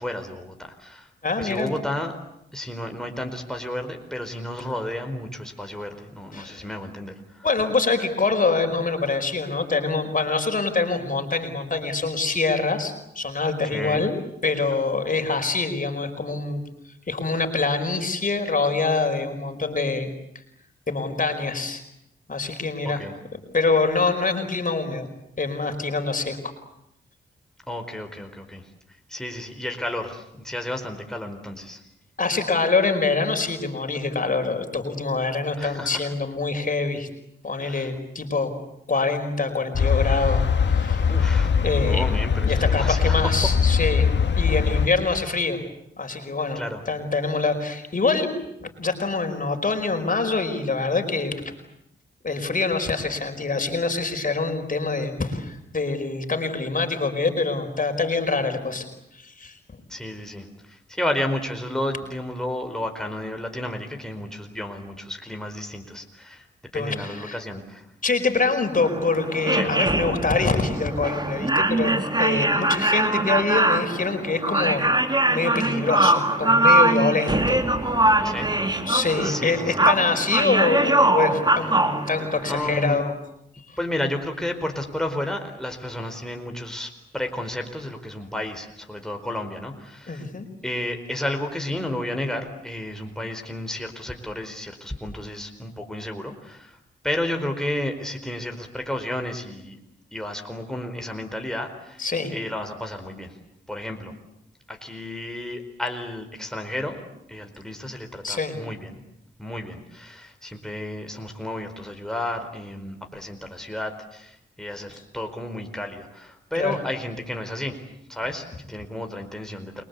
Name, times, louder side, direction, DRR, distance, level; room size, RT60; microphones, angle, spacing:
voice 1, 0.0-1.1 1.4-2.1 2.5-7.5 13.7-14.1 22.8-23.1 27.7-28.7 29.1-31.8 35.6-36.1 37.6-37.9 41.1-43.3 46.5-46.8 59.9-66.4 66.7-67.9 69.5-69.7 78.2-78.6 79.2-79.9 82.5-83.0 83.8-90.3 90.6-96.8 97.0-99.8 100.1-102.1 102.3-103.4 103.7-104.1 104.7-107.0 107.3-109.0 109.4-117.8 118.1-119.8, left 1 dB, 5° left, 4 dB, 4.6 m, -32 dB
voice 2, 1.2-1.7 6.3-6.7 7.4-14.1 14.4-16.6 17.1-20.1 20.9-21.8 22.3-23.0 23.5-25.1 25.4-26.5 32.2-37.1 37.4-38.5 38.9-41.0 41.6-42.0 42.5-44.1 44.4-45.6 46.0-46.6 46.9-48.3 48.6-51.5 52.2-58.9 59.1-59.6 66.7-67.4 68.0-74.8 75.3-77.6 77.9-78.2 78.9-83.1 83.7-83.8 90.1-90.5 102.0-102.4 108.2-108.6 116.5-116.8, left 3 dB, 45° left, 6 dB, 5.0 m, -25 dB
sound 1, 39.7-44.9, left 6 dB, 70° left, 2.1 m, -21 dB
sound 2, 68.7-82.8, right 1 dB, 20° right, 3.4 m, -22 dB
29.0 x 23.0 x 8.4 m, 0.80 s
cardioid pair, 60°, 19 cm